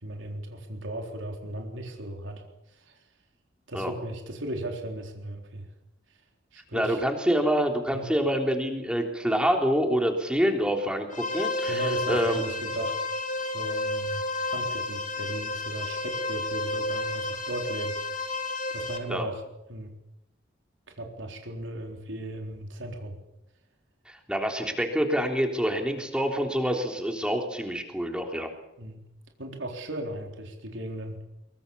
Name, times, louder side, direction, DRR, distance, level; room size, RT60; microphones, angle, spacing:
voice 1, 0.0-2.4 2.7-3.0 3.7-5.7 6.5-7.0 7.9-8.1 11.6-13.0 13.4-19.4 19.7-19.9 21.0-23.2 28.8-29.0 29.4-31.2, right 1 dB, 75° right, 2 dB, 3.9 m, -37 dB
voice 2, 6.7-12.4 19.1-19.3 24.1-28.5, equal, 5° right, 3 dB, 3.5 m, -26 dB
sound 1, 11.1-19.0, left 2 dB, 40° left, 3.8 m, -31 dB
23.5 x 23.0 x 7.1 m, 0.87 s
head